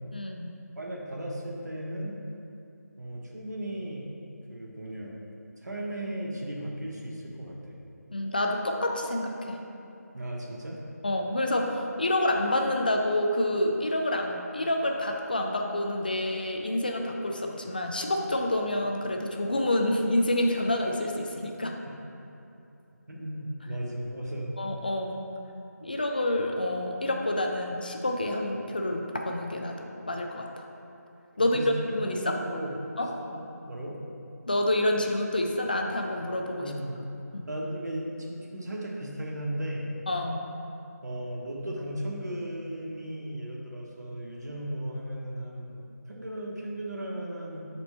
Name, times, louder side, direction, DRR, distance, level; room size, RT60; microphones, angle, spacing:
voice 1, 0.1-0.5 8.1-9.6 11.0-21.7 24.6-25.2 25.8-30.5 31.4-31.6 31.9-32.4 33.0-33.1 34.5-36.7 37.3-37.5 40.1-40.4, left 1 dB, 30° left, 2 dB, 0.3 m, -28 dB
voice 2, 0.8-2.2 3.0-4.1 4.5-5.2 5.6-7.8 10.1-10.8 23.1-24.5 31.5-31.7 32.0-32.8 33.3-33.4 33.7-34.0 36.5-37.0 37.5-39.9 41.0-47.7, right 1 dB, 70° right, -2 dB, 1.1 m, -36 dB
4.4 x 4.1 x 5.3 m, 2.8 s
figure-of-eight pair, 165°, 9 cm